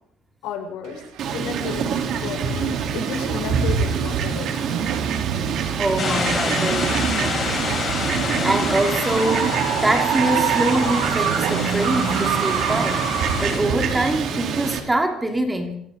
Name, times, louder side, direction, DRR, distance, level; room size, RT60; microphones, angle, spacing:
voice 1, 0.4-1.0 1.3-4.6, left 7 dB, 80° left, 3 dB, 7.2 m, -32 dB
sound 1, 0.8-2.0 2.4-15.0, right 10 dB, 80° right, 2.6 m, -28 dB
Fowl, 1.2-14.8, right 6 dB, 55° right, 4.0 m, -26 dB
voice 2, 5.8-7.0 8.4-15.8, right 1 dB, 10° right, 4 dB, 2.8 m, -24 dB
sound 2, 6.0-13.6, left 4 dB, 30° left, 7.7 m, -28 dB
26.5 x 25.5 x 4.2 m, 0.70 s
cardioid pair, 155°, 0 cm